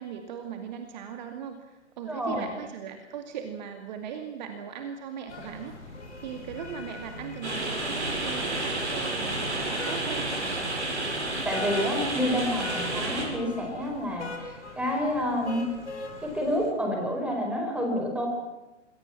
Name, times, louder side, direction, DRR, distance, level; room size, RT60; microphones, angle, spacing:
voice 1, 0.0-10.4, right 7 dB, 40° right, 6 dB, 2.3 m, -39 dB
voice 2, 2.0-2.5 11.4-15.7 16.2-18.3, equal, 5° right, 2 dB, 5.1 m, -29 dB
sound 1, 5.3-16.7, left 2 dB, 70° left, 5.6 m, -42 dB
sound 2, 7.4-13.3, right 2 dB, 70° right, 7.7 m, -30 dB
27.5 x 21.5 x 6.0 m, 1.0 s
figure-of-eight pair, 120°, 36 cm